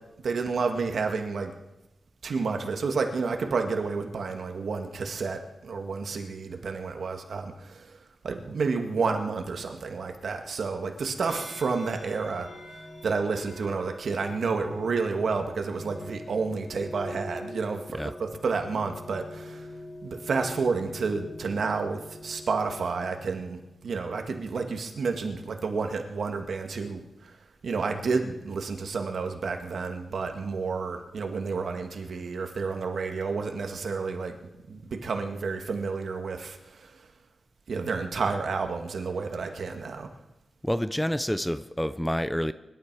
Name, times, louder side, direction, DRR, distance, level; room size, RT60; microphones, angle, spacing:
voice 1, 0.2-1.5 2.2-8.0 8.2-12.5 13.0-19.7 20.0-27.4 27.6-34.4 34.7-36.9 37.7-40.1, right 4 dB, 70° right, 4 dB, 1.8 m, -30 dB
sound 1, 11.3-24.8, left 1 dB, 65° left, 5.9 m, -45 dB
voice 2, 40.6-42.5, equal, 5° left, 12 dB, 0.5 m, -28 dB
24.0 x 12.0 x 4.8 m, 0.95 s
wide cardioid pair, 150°, 0 cm